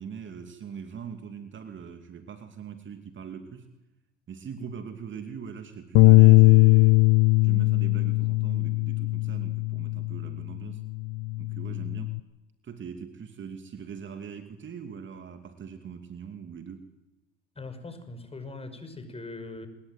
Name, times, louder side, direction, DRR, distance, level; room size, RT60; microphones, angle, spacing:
voice 1, 0.0-3.7 4.3-7.0 7.4-10.8 11.4-12.1 12.6-16.9, right 7 dB, 35° right, 8 dB, 2.7 m, -41 dB
Bass guitar, 5.9-10.4 10.8-12.2, left 22 dB, 50° left, 0.9 m, -20 dB
voice 2, 17.6-19.7, left 3 dB, 15° left, 10 dB, 5.6 m, -41 dB
26.5 x 22.0 x 9.3 m, 0.98 s
hypercardioid pair, 80°, 35 cm